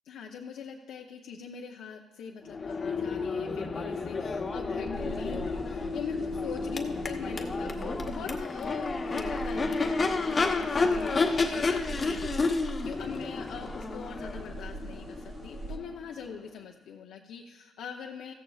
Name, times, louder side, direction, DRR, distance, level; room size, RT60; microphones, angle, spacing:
voice 1, 0.1-18.3, left 7 dB, 80° left, 0 dB, 0.7 m, -42 dB
Crowd / Race car auto racing / Accelerating revving vroom, 2.5-16.3, left 3 dB, 35° left, 0.9 m, -31 dB
sound 1, 4.9-15.8, right 3 dB, 50° right, 0.8 m, -43 dB
15.0 x 14.0 x 2.4 m, 1.1 s
cardioid pair, 90°, 0 cm